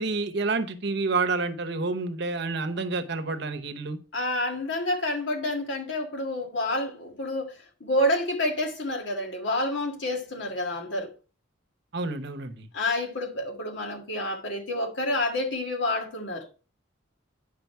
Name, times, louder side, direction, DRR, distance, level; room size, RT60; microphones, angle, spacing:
voice 1, 0.0-4.0 11.9-12.7, right 3 dB, 60° right, 0.9 m, -29 dB
voice 2, 4.1-11.1 12.7-16.5, left 1 dB, 65° left, 1.7 m, -28 dB
9.2 x 5.1 x 4.5 m
head